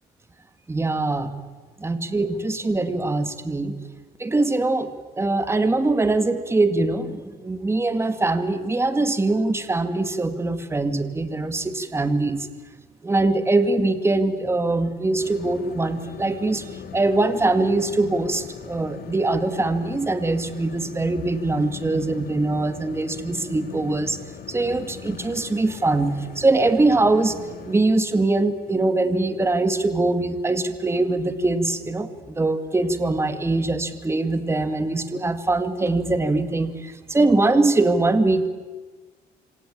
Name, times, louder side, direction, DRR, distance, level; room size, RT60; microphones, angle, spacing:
voice 1, 0.7-1.3 1.8-3.8 4.2-12.5 13.0-24.2 24.5-27.4 27.7-38.5, right 2 dB, 15° right, 10 dB, 2.1 m, -22 dB
sound 1, 15.2-27.8, left 7 dB, 65° left, 2.6 m, -40 dB
26.5 x 26.0 x 8.7 m, 1.3 s
cardioid pair, 110°, 17 cm